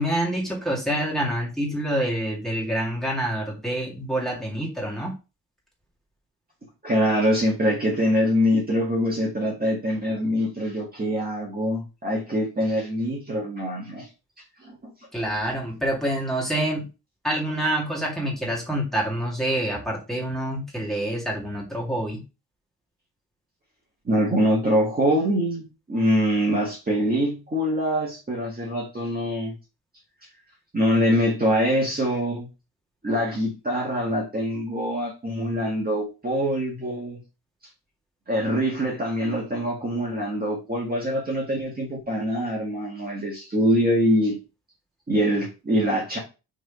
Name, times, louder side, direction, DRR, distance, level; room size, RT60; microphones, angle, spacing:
voice 1, 0.0-5.1 15.1-16.9 17.2-22.2, right 1 dB, ahead, -4 dB, 2.2 m, -27 dB
voice 2, 6.8-14.1 14.6-14.9 24.1-29.5 30.7-32.5 33.0-37.2 38.3-44.4 45.1-46.2, equal, 20° right, -3 dB, 1.8 m, -24 dB
6.1 x 3.8 x 4.8 m, 0.29 s
wide cardioid pair, 170°, 42 cm